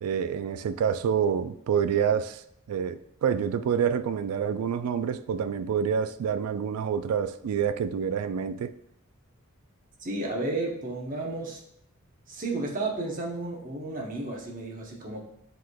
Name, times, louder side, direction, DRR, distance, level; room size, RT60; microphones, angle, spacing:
voice 1, 0.0-8.7, right 7 dB, 80° right, 13 dB, 0.3 m, -27 dB
voice 2, 10.0-11.6 12.3-15.2, right 2 dB, 40° right, -2 dB, 0.8 m, -32 dB
7.5 x 3.1 x 2.2 m, 0.73 s
head